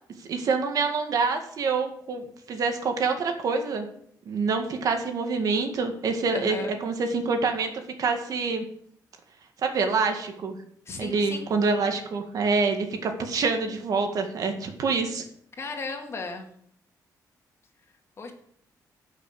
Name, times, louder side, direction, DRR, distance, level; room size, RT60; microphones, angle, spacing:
voice 1, 0.3-3.9 4.3-7.7 8.0-8.6 9.6-10.5 11.0-15.2, right 4 dB, 60° right, 5 dB, 1.9 m, -26 dB
voice 2, 6.3-6.8 10.9-11.5 15.6-16.5 18.2-18.3, left 4 dB, 40° left, 3 dB, 2.1 m, -35 dB
11.0 x 6.2 x 7.1 m, 0.66 s
cardioid pair, 120°, 7 cm